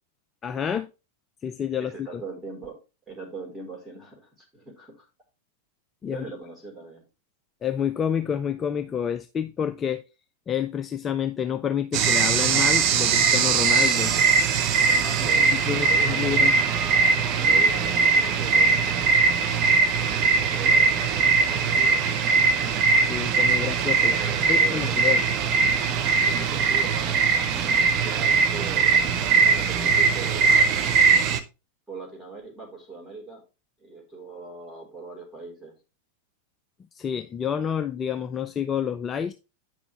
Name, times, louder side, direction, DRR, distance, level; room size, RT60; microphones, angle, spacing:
voice 1, 0.4-0.9 1.4-2.2 6.0-6.2 7.6-10.0 10.5-14.1 15.5-16.6 23.1-25.2 36.9-39.3, left 8 dB, 20° left, 0.5 m, -29 dB
voice 2, 1.8-2.8 3.1-5.1 6.1-7.1 15.0-16.5 17.4-19.4 20.0-22.1 24.0-25.0 26.3-30.6 31.9-33.4 33.8-35.7, right 3 dB, 5° right, 4.2 m, -41 dB
sound 1, 11.9-31.4, right 5 dB, 40° right, 0.9 m, -21 dB
9.1 x 6.1 x 3.3 m
figure-of-eight pair, 90°, 0 cm